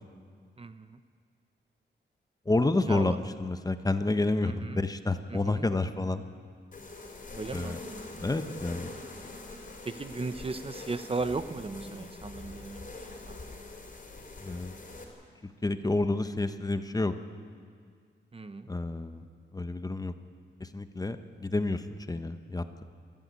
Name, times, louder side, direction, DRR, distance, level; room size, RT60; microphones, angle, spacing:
voice 1, 0.6-1.0 2.9-3.2 4.4-4.8 5.3-5.7 7.3-7.8 9.8-13.0 13.3-13.4 18.3-18.7, right 3 dB, 30° right, 10 dB, 0.9 m, -36 dB
voice 2, 2.5-6.2 7.5-7.8 8.2-8.9 14.4-14.7 15.6-17.1 18.7-19.2 19.5-20.1 20.6-22.8, left 2 dB, 20° left, 9 dB, 1.0 m, -29 dB
sound 1, 6.7-15.0, left 2 dB, 45° left, 4.5 m, -44 dB
29.5 x 12.5 x 9.7 m, 2.1 s
wide cardioid pair, 100°, 19 cm